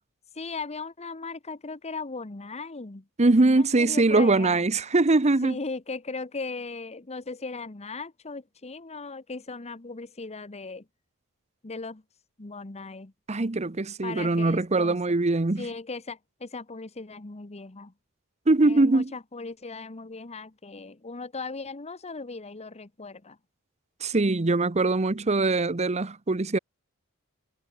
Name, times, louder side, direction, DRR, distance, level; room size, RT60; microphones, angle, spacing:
voice 1, 0.3-3.1 3.5-4.6 5.4-10.9 11.6-12.0 12.4-13.1 14.0-15.0 15.6-17.9 18.6-23.4, left 3 dB, 30° left, 1.1 m, -38 dB
voice 2, 3.2-5.5 13.3-15.6 18.5-19.1 24.0-26.6, right 2 dB, 30° right, 0.8 m, -22 dB
head